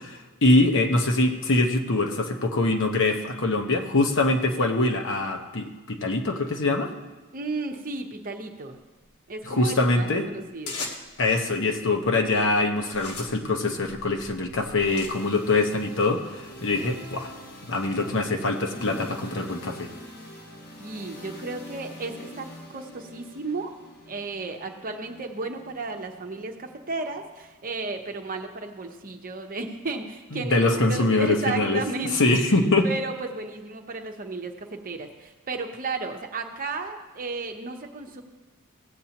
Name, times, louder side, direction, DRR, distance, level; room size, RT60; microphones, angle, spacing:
voice 1, 0.0-6.9 9.5-10.2 11.2-17.3 17.7-19.9 30.3-31.8 32.1-32.9, left 2 dB, 60° left, 4 dB, 1.1 m, -23 dB
voice 2, 7.3-8.8 9.3-10.8 20.8-23.7 24.1-38.2, right 3 dB, 40° right, 4 dB, 0.9 m, -34 dB
sound 1, 10.7-11.3 12.1-12.4 12.8-15.1, left 3 dB, 90° left, 1.3 m, -38 dB
sound 2, 14.8-28.7, equal, 45° left, 1.4 m, -45 dB
17.0 x 8.3 x 2.9 m, 1.3 s
head